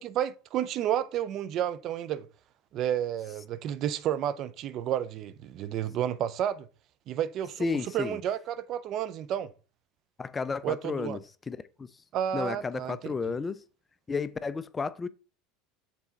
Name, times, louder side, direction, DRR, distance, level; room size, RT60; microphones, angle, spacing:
voice 1, 0.0-2.3 2.7-6.7 7.1-7.7 7.9-9.5 10.6-11.2 12.1-13.4, right 10 dB, 50° right, 0.5 m, -31 dB
voice 2, 7.6-8.2 10.2-11.2 11.5-11.9 12.3-13.6 14.1-15.1, left 4 dB, 20° left, 0.4 m, -32 dB
6.2 x 4.1 x 3.9 m
supercardioid pair, 100°, 0 cm